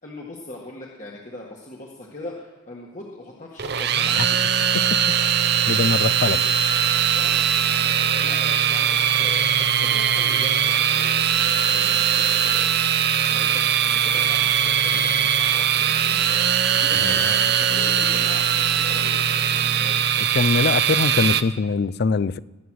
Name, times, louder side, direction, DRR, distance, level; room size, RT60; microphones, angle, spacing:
voice 1, 0.0-4.4 6.0-6.5 7.1-8.9 9.2-20.0, left 2 dB, 40° left, 1.7 m, -40 dB
sound 1, 3.6-21.4, right 8 dB, 55° right, 0.7 m, -20 dB
voice 2, 5.7-6.4 17.0-17.2 20.2-22.4, left 4 dB, 55° left, 0.4 m, -22 dB
20.0 x 9.4 x 6.3 m
head